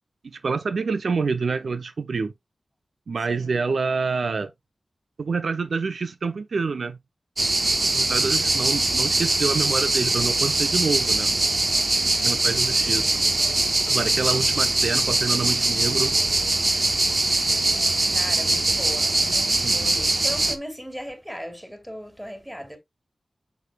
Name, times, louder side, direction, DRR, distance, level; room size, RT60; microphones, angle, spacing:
voice 1, 0.3-2.3 3.1-4.5 5.2-7.0 7.9-11.3 12.2-13.1 13.9-16.2 19.6-19.9, right 4 dB, 80° right, 0.5 m, -27 dB
voice 2, 3.3-3.6 8.4-8.5 12.6-12.8 18.1-22.8, equal, 5° right, 3.1 m, -38 dB
sound 1, 7.4-20.6, right 2 dB, 45° right, 1.0 m, -22 dB
7.9 x 7.0 x 2.4 m
cardioid pair, 40°, 0 cm